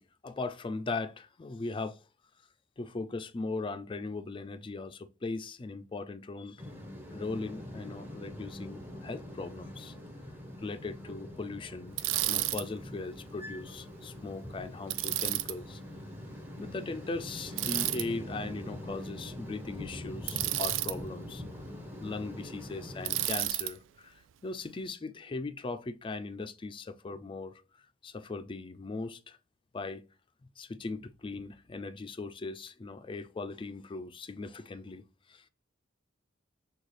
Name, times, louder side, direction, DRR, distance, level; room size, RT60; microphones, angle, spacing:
voice 1, 0.0-2.0 2.8-6.6 7.1-9.9 10.6-12.0 12.3-15.8 16.6-21.4 22.0-24.1 24.4-27.6 28.0-29.4 29.7-30.0 30.6-35.0 35.3-35.4, left 3 dB, 25° left, 0.4 m, -39 dB
sound 1, 6.6-23.3, left 1 dB, 10° right, 1.0 m, -44 dB
Bicycle, 12.0-12.6 14.9-15.5 17.6-18.0 20.3-20.9 23.0-23.7, right 15 dB, 85° right, 0.3 m, -31 dB
6.2 x 2.3 x 3.2 m
head